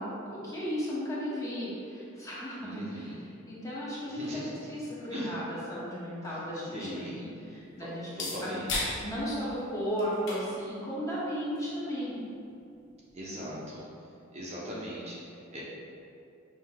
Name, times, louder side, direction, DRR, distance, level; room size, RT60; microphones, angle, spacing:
voice 1, 0.0-3.2 3.5-5.4 5.7-8.1 8.4-8.6 9.0-12.2, equal, 15° left, -8 dB, 0.9 m, -35 dB
voice 2, 2.6-3.2 4.1-4.7 5.1-5.3 6.7-7.2 7.8-7.9 8.1-8.9 13.1-13.8 14.3-15.6, equal, 35° right, -6 dB, 0.6 m, -39 dB
sound 1, 6.2-13.7, left 2 dB, 65° left, 0.8 m, -41 dB
5.7 x 2.5 x 2.9 m, 2.5 s
head